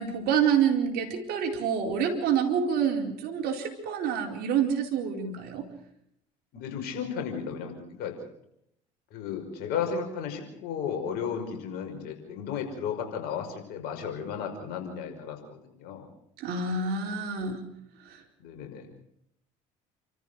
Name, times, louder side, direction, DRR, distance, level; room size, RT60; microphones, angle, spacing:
voice 1, 0.0-5.6 16.4-17.6 18.1-18.2, right 7 dB, 65° right, 3 dB, 4.4 m, -27 dB
voice 2, 6.5-8.1 9.1-16.1 18.4-18.9, left 7 dB, 65° left, 4 dB, 5.7 m, -34 dB
29.5 x 14.0 x 6.4 m, 0.73 s
hypercardioid pair, 65°, 18 cm